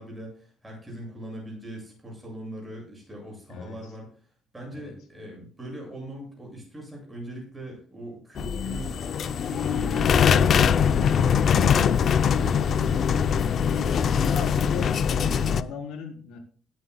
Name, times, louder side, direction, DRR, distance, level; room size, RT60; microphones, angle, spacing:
voice 1, 0.0-4.3 4.5-13.5, right 1 dB, 10° right, -1 dB, 7.4 m, -40 dB
sound 1, 8.4-15.6, left 7 dB, 40° left, 0.5 m, -22 dB
voice 2, 13.5-16.4, left 6 dB, 85° left, 1 dB, 4.2 m, -37 dB
21.0 x 9.6 x 2.3 m, 0.42 s
cardioid pair, 170°, 0 cm